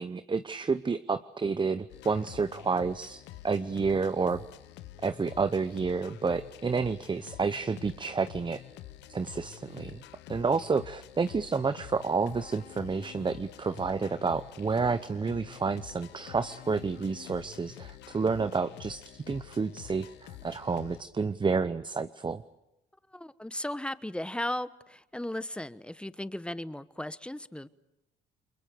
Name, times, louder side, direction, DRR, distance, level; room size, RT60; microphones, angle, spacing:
voice 1, 0.0-4.4 5.0-8.6 9.1-10.0 10.3-22.4, right 4 dB, 25° right, 12 dB, 0.8 m, -30 dB
sound 1, 1.9-21.0, left 13 dB, 85° left, 0.9 m, -48 dB
voice 2, 23.1-27.7, left 1 dB, 5° left, 14 dB, 1.1 m, -36 dB
29.5 x 22.5 x 6.9 m, 0.93 s
supercardioid pair, 70°, 18 cm